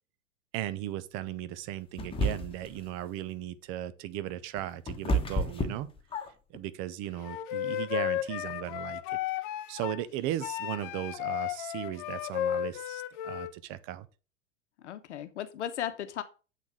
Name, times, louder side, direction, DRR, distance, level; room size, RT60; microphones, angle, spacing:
voice 1, 0.5-5.9 6.5-9.0 9.7-14.1, right 13 dB, 35° right, 0.7 m, -37 dB
sound 1, 2.0-2.8 4.3-6.6, right 1 dB, 15° left, 1.3 m, -30 dB
Wind instrument woodwind instrument, 7.2-10.0 10.4-13.5, left 13 dB, 40° left, 0.6 m, -34 dB
voice 2, 14.8-16.2, left 10 dB, 60° left, 1.0 m, -36 dB
8.4 x 4.2 x 4.7 m
figure-of-eight pair, 95°, 39 cm